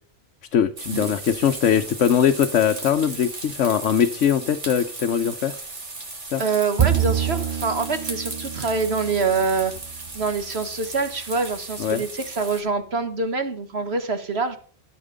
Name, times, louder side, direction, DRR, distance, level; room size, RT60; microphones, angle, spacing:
voice 1, 0.5-5.6 6.3-6.4 11.8-12.0, left 8 dB, 85° left, 6 dB, 1.2 m, -21 dB
sound 1, 0.8-12.6, right 2 dB, 80° right, 3.0 m, -36 dB
voice 2, 6.4-9.7 10.1-14.6, right 4 dB, 60° right, 9 dB, 1.7 m, -25 dB
Bowed string instrument, 6.8-10.3, right 10 dB, 30° right, 0.6 m, -27 dB
14.0 x 8.2 x 5.2 m, 0.43 s
omnidirectional pair, 1.2 m